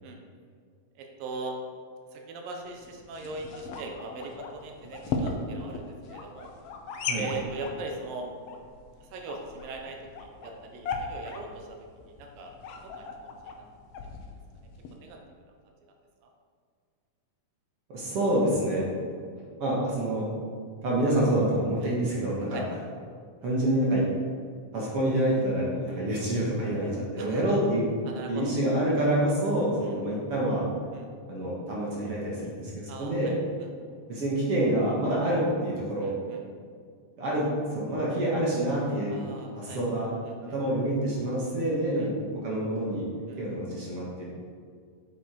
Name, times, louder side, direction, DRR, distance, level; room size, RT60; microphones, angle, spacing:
voice 1, 1.0-1.6 2.1-6.5 7.2-8.3 9.0-12.6 12.8-13.7 14.9-15.2 16.2-16.3 21.8-22.2 22.5-22.7 25.9-26.0 27.2-27.6 28.0-28.5 28.9-29.0 29.8-30.0 30.9-31.1 32.9-33.7 36.0-36.4 39.1-39.8 40.2-40.6 42.0-42.1 43.3-43.4, right 3 dB, 90° right, 2 dB, 2.7 m, -41 dB
sound 1, 2.6-15.0, left 4 dB, 85° left, 1.3 m, -38 dB
voice 2, 17.9-18.9 19.6-20.3 20.8-22.6 23.4-24.1 24.7-27.9 28.3-30.7 31.3-33.3 34.1-36.1 37.2-39.2 39.5-40.1 40.5-43.1 43.4-44.2, right 1 dB, 50° right, -5 dB, 2.3 m, -27 dB
8.6 x 8.0 x 4.6 m, 2.1 s
omnidirectional pair, 3.9 m